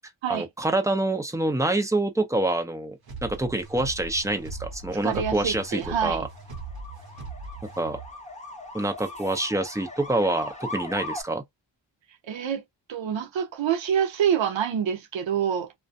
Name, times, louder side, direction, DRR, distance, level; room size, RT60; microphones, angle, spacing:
voice 1, 0.3-6.3 7.8-8.0 8.7-11.4, right 2 dB, 5° right, 0.5 m, -26 dB
sound 1, 3.0-8.1, right 3 dB, 55° right, 0.8 m, -39 dB
sound 2, 3.4-11.2, left 1 dB, 15° left, 0.9 m, -40 dB
voice 2, 5.0-6.3 12.2-12.6 12.9-15.7, right 8 dB, 80° right, 0.7 m, -26 dB
2.4 x 2.2 x 2.5 m
wide cardioid pair, 140°, 45 cm